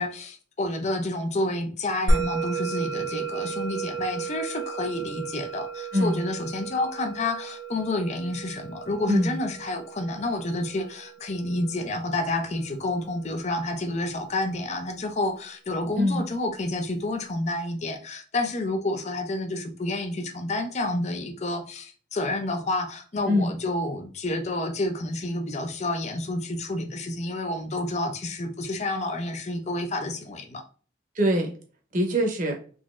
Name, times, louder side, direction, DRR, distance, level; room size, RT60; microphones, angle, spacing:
voice 1, 0.0-30.6, left 2 dB, 35° left, 0.5 m, -29 dB
Musical instrument, 2.1-12.7, right 3 dB, 75° right, 0.8 m, -32 dB
voice 2, 31.1-31.5 31.9-32.5, equal, 45° right, 0.8 m, -23 dB
3.8 x 3.0 x 2.4 m
head